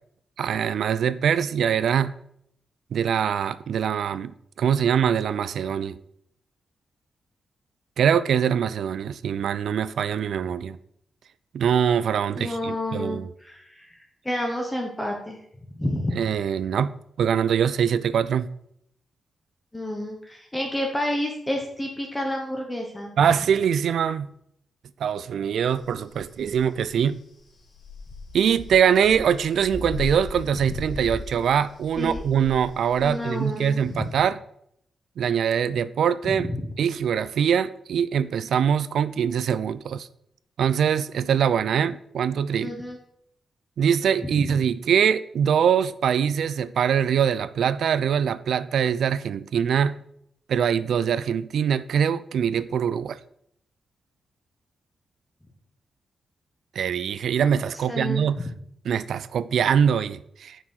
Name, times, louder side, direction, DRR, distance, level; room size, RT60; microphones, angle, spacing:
voice 1, 0.4-2.1 2.9-6.0 8.0-10.8 11.5-13.3 16.1-18.5 23.2-24.3 25.0-27.2 28.3-34.4 35.2-36.5 36.8-40.1 40.6-42.7 43.8-50.0 50.5-53.2 56.8-58.4 58.8-60.6, right 8 dB, 70° right, 0.4 m, -23 dB
voice 2, 12.4-14.0 14.2-15.4 15.7-16.2 19.7-23.2 32.0-32.2 33.0-34.1 36.3-36.7 42.6-43.0 44.2-44.5 57.9-58.5, left 1 dB, 10° left, 1.0 m, -30 dB
sound 1, 25.7-34.2, left 2 dB, 60° left, 3.4 m, -38 dB
7.1 x 5.9 x 6.4 m
wide cardioid pair, 175°, 0 cm